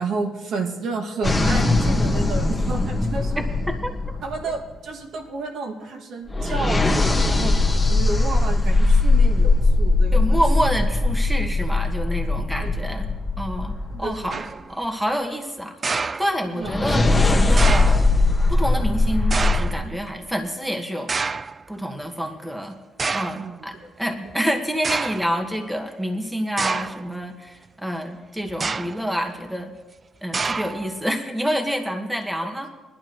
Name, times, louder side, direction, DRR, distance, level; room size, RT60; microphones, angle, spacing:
voice 1, 0.0-3.4 4.2-7.5 7.9-10.4 12.6-12.7 13.9-14.4 16.5-16.8 23.4-23.9 32.4-32.5, right 3 dB, 70° right, 1 dB, 2.1 m, -31 dB
sound 1, 1.2-4.7 6.3-14.3 16.6-19.7, left 2 dB, 15° left, 1.6 m, -20 dB
voice 2, 10.1-13.1 13.4-14.4 14.7-15.7 16.2-18.1 18.5-21.1 21.7-22.8 23.1-29.7 30.2-32.7, equal, 5° right, 3 dB, 1.5 m, -27 dB
sound 2, 14.3-14.7 15.8-16.7 17.6-18.1 19.3-19.9 21.1-21.6 22.4-22.5 23.0-23.5 24.3-24.4 24.8-25.3 26.6-27.1 28.5-29.1 30.3-31.0, right 4 dB, 35° right, 0.3 m, -27 dB
19.5 x 11.5 x 3.1 m, 1.2 s
cardioid pair, 90°, 0 cm